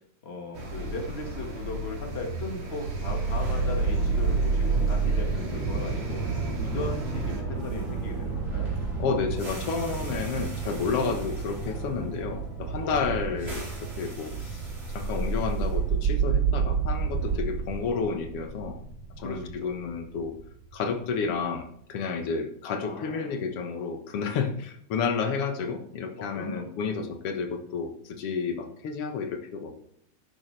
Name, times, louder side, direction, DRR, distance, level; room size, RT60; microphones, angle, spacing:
voice 1, 0.2-6.2 6.6-8.7 12.8-13.2 19.2-19.7 22.6-23.3 26.2-26.7, left 2 dB, 90° left, 1 dB, 0.5 m, -37 dB
sound 1, 0.5-7.4, equal, 50° right, 3.7 m, -38 dB
sound 2, 2.8-20.9, right 4 dB, 35° right, 5.7 m, -29 dB
voice 2, 9.0-14.6 14.9-18.8 19.2-20.3 20.7-29.7, left 5 dB, 60° left, 5 dB, 1.5 m, -31 dB
12.5 x 10.0 x 3.3 m, 0.69 s
omnidirectional pair, 4.3 m